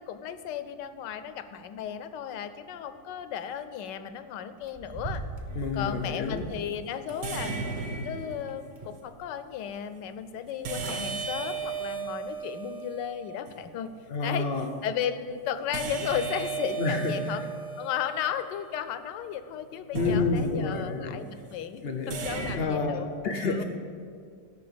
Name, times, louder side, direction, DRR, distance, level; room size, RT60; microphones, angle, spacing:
voice 1, 0.0-5.2 5.7-13.9 14.2-14.5 14.8-17.4 17.8-23.1 23.4-23.6, left 9 dB, 80° left, 11 dB, 1.3 m, -35 dB
sound 1, 4.6-6.6 7.1-7.9 8.3-9.2 9.6-9.7 10.4-10.5 10.7-11.1 11.5-11.8 12.3-12.4, right 2 dB, 35° right, 1.0 m, -40 dB
sound 2, 5.5-5.8 7.2-8.7 10.6-13.7 15.7-19.1 19.9-21.0 22.1-22.6, right 5 dB, 65° right, 1.5 m, -35 dB
voice 2, 5.6-6.4 14.1-14.7 16.8-17.4 19.9-21.2 21.8-22.2 22.6-23.6, left 4 dB, 65° left, 5 dB, 0.6 m, -29 dB
13.0 x 5.8 x 7.0 m, 2.3 s
omnidirectional pair, 1.9 m